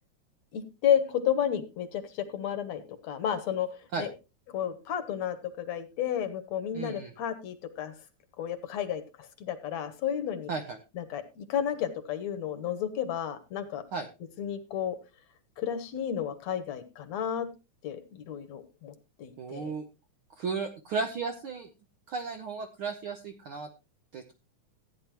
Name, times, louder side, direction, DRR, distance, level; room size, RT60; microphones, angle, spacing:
voice 1, 0.5-3.7 4.0-4.1 4.5-7.9 8.4-10.5 11.0-13.8 14.4-15.0 15.6-17.5 17.8-18.9 19.2-19.7, left 9 dB, 65° left, 11 dB, 2.2 m, -32 dB
voice 2, 6.7-7.1 10.5-10.8 13.9-14.1 19.4-19.8 20.4-21.7 22.1-23.7 24.1-24.3, right 4 dB, 70° right, 6 dB, 1.2 m, -34 dB
15.5 x 9.5 x 3.0 m, 0.27 s
omnidirectional pair, 3.6 m